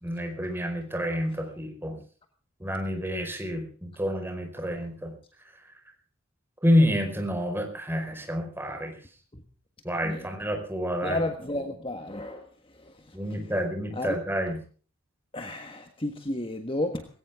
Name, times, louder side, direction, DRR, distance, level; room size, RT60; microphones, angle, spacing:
voice 1, 0.0-2.0 2.6-5.1 6.6-8.9 9.8-11.2 13.1-14.6, equal, 10° right, 4 dB, 5.0 m, -28 dB
voice 2, 11.0-12.4 14.0-14.1 15.3-17.1, left 1 dB, 25° left, 6 dB, 1.5 m, -32 dB
19.5 x 18.0 x 3.7 m, 0.40 s
head